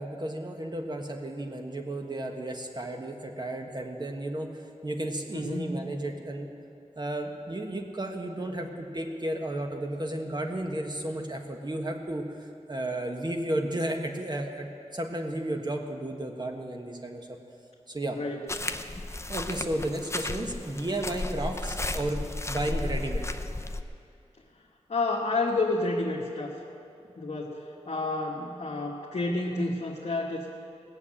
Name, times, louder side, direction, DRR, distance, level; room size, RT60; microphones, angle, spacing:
voice 1, 0.0-4.5 4.8-6.5 7.0-17.4 17.9-18.2 19.3-22.2 22.5-23.3 27.8-27.9, right 1 dB, 35° right, 3 dB, 1.5 m, -33 dB
voice 2, 5.3-5.8 18.1-18.4 24.9-26.6 27.2-30.5, left 2 dB, 60° left, -3 dB, 1.3 m, -30 dB
sound 1, 18.5-23.8, left 2 dB, 20° left, 0.7 m, -34 dB
17.5 x 7.2 x 8.7 m, 2.5 s
wide cardioid pair, 75°, 12 cm